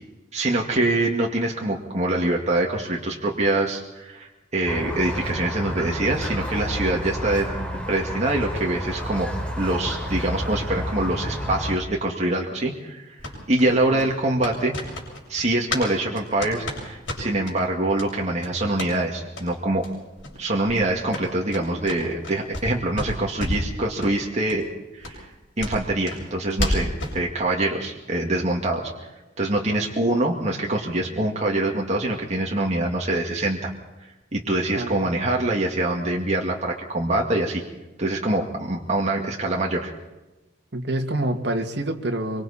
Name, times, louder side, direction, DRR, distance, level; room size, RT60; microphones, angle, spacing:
voice 1, 0.3-7.5 7.9-9.3 9.6-13.2 13.5-14.8 15.3-19.9 20.4-24.7 24.9-25.3 25.6-28.9 29.4-33.7 34.3-37.6 38.0-39.9, right 2 dB, 40° right, -1 dB, 2.2 m, -24 dB
Squeak, 4.7-11.8, equal, 5° left, 4.2 m, -30 dB
sound 1, 13.2-15.9 16.1-17.6 17.9-18.1 18.4-18.9 19.3-19.5 19.8-19.9 20.2-20.4 20.6-22.7 22.9-23.7 24.0-24.1 24.5-24.6 25.0-27.2, left 1 dB, 80° left, 7.3 m, -31 dB
voice 2, 13.7-14.1 34.7-34.9 40.7-42.4, right 1 dB, 65° right, 4 dB, 2.1 m, -27 dB
25.0 x 24.5 x 4.3 m, 1.1 s
head